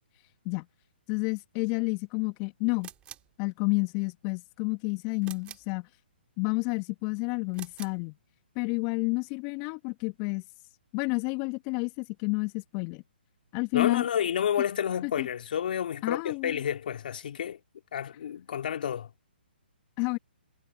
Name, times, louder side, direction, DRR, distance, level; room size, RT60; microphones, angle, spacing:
voice 1, 1.1-2.9 3.4-5.9 6.4-8.1 8.5-10.4 10.9-13.0 13.5-14.1 15.0-15.3 16.0-16.6 20.0-20.2, left 31 dB, 30° left, 1.2 m, -30 dB
sound 1, 2.8-3.4 5.2-5.8 7.5-8.0, right 11 dB, 20° right, 2.6 m, -46 dB
voice 2, 13.7-17.6 17.9-19.1, left 9 dB, 55° left, 2.1 m, -30 dB
figure-of-eight pair, 135°, 6 cm